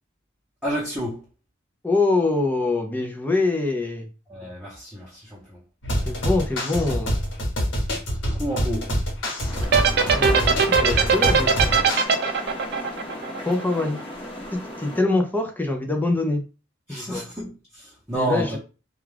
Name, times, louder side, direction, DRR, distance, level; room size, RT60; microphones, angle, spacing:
voice 1, 0.6-1.3 4.3-5.6 8.2-8.9 16.9-18.6, right 1 dB, 5° right, 0.8 m, -30 dB
voice 2, 1.8-4.1 6.1-7.2 10.1-11.8 13.5-14.0 14.5-16.4 16.9-17.2 18.1-18.6, left 2 dB, 10° left, 0.4 m, -24 dB
sound 1, 5.8-12.0, equal, 65° left, 1.0 m, -26 dB
sound 2, 9.5-15.0, left 1 dB, 25° left, 0.8 m, -35 dB
sound 3, 9.6-14.0, right 6 dB, 55° right, 0.4 m, -19 dB
2.3 x 2.3 x 3.2 m
head